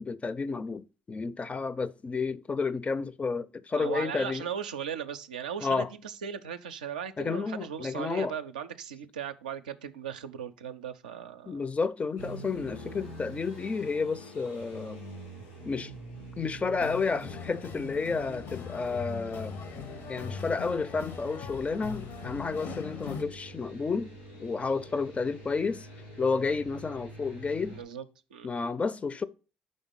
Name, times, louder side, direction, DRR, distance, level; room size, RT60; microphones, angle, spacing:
voice 1, 0.0-4.5 5.6-5.9 7.2-8.3 11.5-15.0 15.7-15.9 16.4-19.6 20.1-24.1 24.4-25.9 26.2-27.8 28.4-29.2, left 4 dB, 30° left, 0.4 m, -31 dB
voice 2, 3.7-11.6 27.7-28.0 28.3-28.5, right 8 dB, 85° right, 0.4 m, -38 dB
sound 1, 12.2-27.8, right 1 dB, 90° left, 2.5 m, -46 dB
sound 2, 16.8-23.2, left 5 dB, 60° left, 0.7 m, -41 dB
5.3 x 3.5 x 5.6 m
hypercardioid pair, 50°, 4 cm